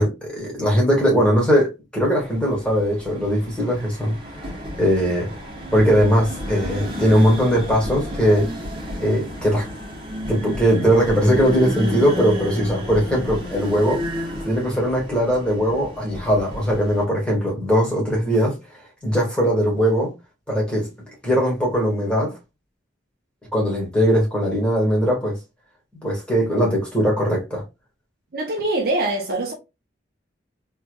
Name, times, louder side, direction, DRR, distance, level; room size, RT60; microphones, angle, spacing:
voice 1, 0.0-4.5 4.8-5.3 5.7-8.5 9.0-9.7 10.3-18.5 19.0-20.1 20.5-20.9 21.2-22.4 23.5-25.4 26.0-27.6, equal, 5° left, 1.8 m, -20 dB
sound 1, 2.2-17.0, equal, 30° right, 1.3 m, -32 dB
voice 2, 28.3-29.5, right 2 dB, 55° right, 0.8 m, -23 dB
3.3 x 3.3 x 2.3 m
head